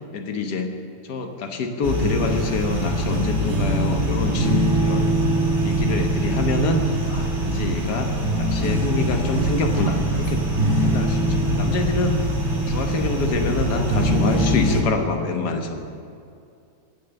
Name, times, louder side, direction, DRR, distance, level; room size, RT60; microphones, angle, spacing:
voice 1, 0.1-0.7 1.0-5.2 5.6-6.8 7.1-10.5 10.8-12.2 12.7-15.9, left 3 dB, 75° left, 5 dB, 1.8 m, -26 dB
sound 1, 1.8-14.8, right 1 dB, 40° right, 2.6 m, -22 dB
18.5 x 6.7 x 7.0 m, 2.5 s
omnidirectional pair, 1.8 m